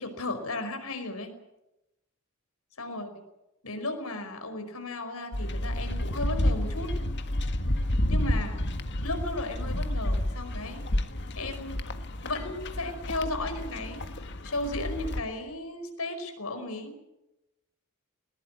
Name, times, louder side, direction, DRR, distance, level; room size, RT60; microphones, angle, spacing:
voice 1, 0.0-1.3 2.8-3.1 3.6-6.9 8.1-8.7 9.0-10.8 11.4-11.9 12.2-17.0, left 2 dB, 75° left, 7 dB, 5.0 m, -35 dB
sound 1, 5.3-15.2, left 1 dB, 55° left, 1.7 m, -30 dB
20.5 x 20.0 x 9.6 m, 0.93 s
head